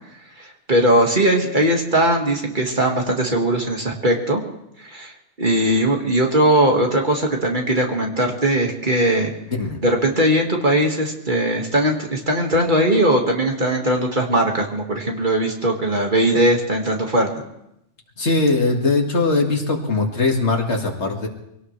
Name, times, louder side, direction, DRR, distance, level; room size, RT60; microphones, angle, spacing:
voice 1, 0.4-4.4 4.8-9.3 9.8-17.4, right 1 dB, 40° right, 1 dB, 2.0 m, -19 dB
voice 2, 9.5-9.8 18.2-21.3, left 3 dB, 60° left, 1 dB, 2.3 m, -20 dB
24.5 x 18.0 x 3.2 m, 0.83 s
omnidirectional pair, 1.3 m